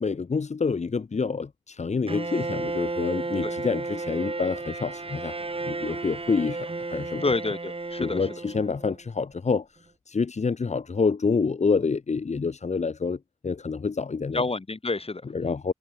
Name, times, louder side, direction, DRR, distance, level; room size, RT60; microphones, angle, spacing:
voice 1, 0.0-5.3 5.6-7.2 8.0-9.7 10.1-13.2 13.4-14.4 15.3-15.7, left 4 dB, 85° left, 1.5 m, -27 dB
Bowed string instrument, 2.1-9.0, right 3 dB, 55° right, 3.2 m, -33 dB
voice 2, 7.2-8.3 14.3-15.5, left 3 dB, 60° left, 6.1 m, -29 dB
wide cardioid pair, 55°, 11 cm